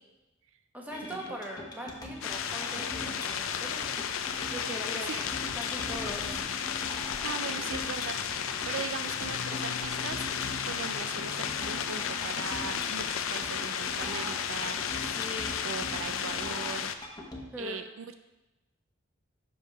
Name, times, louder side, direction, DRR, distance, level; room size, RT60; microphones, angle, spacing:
voice 1, 0.7-5.1 5.5-6.4 15.2-15.7 17.5-17.8, equal, 10° right, -1 dB, 1.3 m, -41 dB
sound 1, 0.9-17.4, left 1 dB, 20° left, 1.1 m, -43 dB
sound 2, 2.2-16.9, left 8 dB, 70° left, 0.5 m, -33 dB
voice 2, 6.9-10.3 10.6-14.8 15.6-16.9 17.6-18.1, right 6 dB, 70° right, 10 dB, 0.4 m, -40 dB
6.4 x 5.4 x 5.4 m, 1.0 s
head